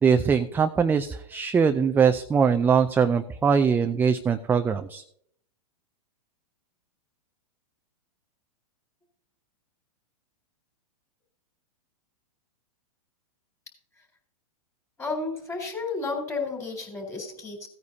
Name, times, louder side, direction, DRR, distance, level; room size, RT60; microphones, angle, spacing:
voice 1, 0.0-5.0, right 6 dB, 10° right, 8 dB, 0.4 m, -22 dB
voice 2, 15.0-17.7, left 3 dB, 15° left, 2 dB, 4.0 m, -32 dB
16.0 x 9.5 x 2.7 m, 0.66 s
hypercardioid pair, 125°, 19 cm